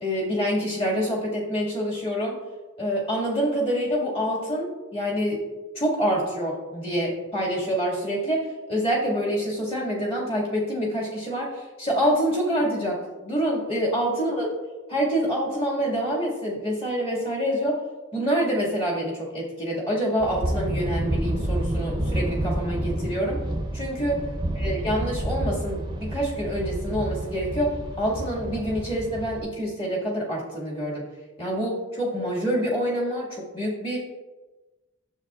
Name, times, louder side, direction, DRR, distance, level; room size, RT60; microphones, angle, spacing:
voice 1, 0.0-2.4 2.8-5.4 5.7-14.5 14.9-17.8 18.1-23.4 23.7-24.2 24.6-31.0 31.4-34.0, equal, 30° left, -5 dB, 2.1 m, -26 dB
sound 1, 20.2-29.4, right 1 dB, 20° right, 0.6 m, -29 dB
9.6 x 7.4 x 2.4 m, 1.2 s
head